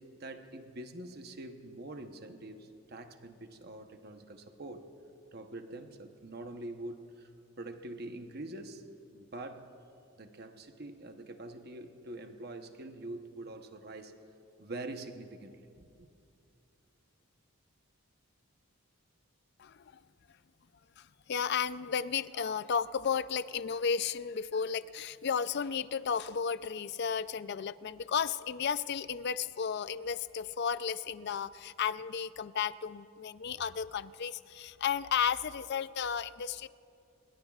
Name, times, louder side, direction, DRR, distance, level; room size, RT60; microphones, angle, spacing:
voice 1, 0.0-4.9 5.3-7.3 7.6-8.8 9.1-9.7 10.2-14.1 14.6-16.1, right 2 dB, 45° right, 6 dB, 0.9 m, -45 dB
voice 2, 19.6-19.9 21.0-36.7, left 7 dB, 50° left, 15 dB, 0.4 m, -33 dB
26.5 x 22.0 x 2.4 m, 2.5 s
head